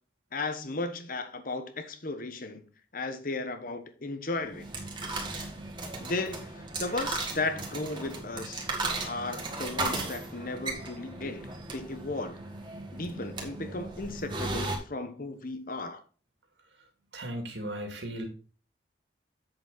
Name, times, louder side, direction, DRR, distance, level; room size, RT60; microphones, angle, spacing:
voice 1, 0.3-2.7 2.9-4.7 6.0-8.6 9.0-12.4 12.9-16.0, left 2 dB, 50° left, 9 dB, 1.1 m, -35 dB
sound 1, 4.4-14.8, right 2 dB, 25° right, 1.9 m, -36 dB
voice 2, 17.1-18.3, right 1 dB, 85° right, 4 dB, 2.2 m, -36 dB
7.8 x 6.8 x 4.0 m, 0.39 s
head